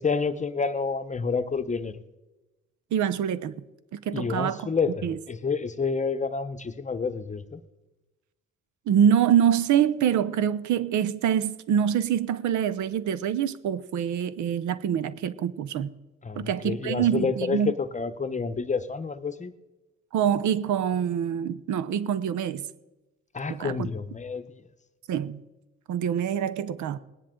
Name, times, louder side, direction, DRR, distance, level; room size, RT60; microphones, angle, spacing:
voice 1, 0.0-2.0 4.1-7.6 16.2-19.5 23.3-24.5, left 5 dB, 25° left, 12 dB, 0.8 m, -29 dB
voice 2, 2.9-3.5 3.9-4.7 5.0-5.2 8.9-15.9 16.4-17.7 20.1-22.7 23.5-23.9 25.1-25.4 25.9-27.0, right 9 dB, 70° right, 16 dB, 0.8 m, -25 dB
20.0 x 10.0 x 3.8 m, 1.1 s
cardioid pair, 90°, 30 cm